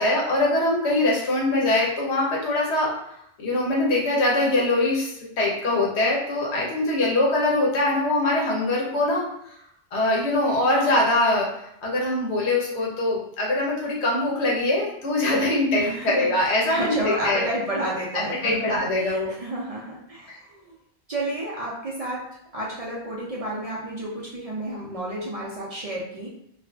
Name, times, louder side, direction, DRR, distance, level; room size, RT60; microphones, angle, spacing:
voice 1, 0.0-3.0 3.4-9.6 9.9-17.4 18.1-19.3 20.3-20.4, left 2 dB, 90° left, -3 dB, 1.0 m, -23 dB
voice 2, 15.7-20.8 21.1-26.3, right 1 dB, 50° right, -5 dB, 0.4 m, -31 dB
2.5 x 2.3 x 2.2 m, 0.74 s
omnidirectional pair, 1.1 m